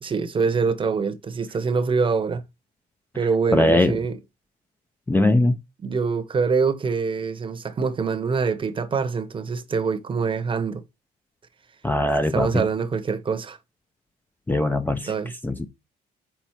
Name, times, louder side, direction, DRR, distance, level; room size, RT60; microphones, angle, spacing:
voice 1, 0.0-2.4 3.1-4.2 5.8-10.8 12.3-13.6 15.1-15.3, right 5 dB, 30° right, 1.0 m, -24 dB
voice 2, 3.5-4.0 5.1-5.6 11.8-12.7 14.5-15.1 15.4-15.7, left 1 dB, 10° left, 0.6 m, -21 dB
5.7 x 4.1 x 4.5 m
cardioid pair, 110°, 17 cm